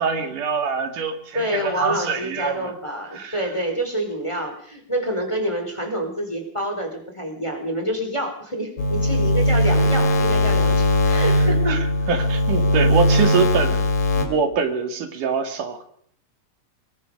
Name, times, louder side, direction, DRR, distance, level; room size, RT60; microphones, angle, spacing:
voice 1, 0.0-2.7 3.1-3.4 11.7-13.9 14.2-15.8, right 5 dB, 85° right, 7 dB, 3.7 m, -24 dB
voice 2, 1.3-11.8, equal, 10° left, 3 dB, 3.7 m, -27 dB
sound 1, 8.8-14.2, left 1 dB, 85° left, 4.5 m, -19 dB
25.0 x 21.5 x 5.3 m, 0.64 s
omnidirectional pair, 3.6 m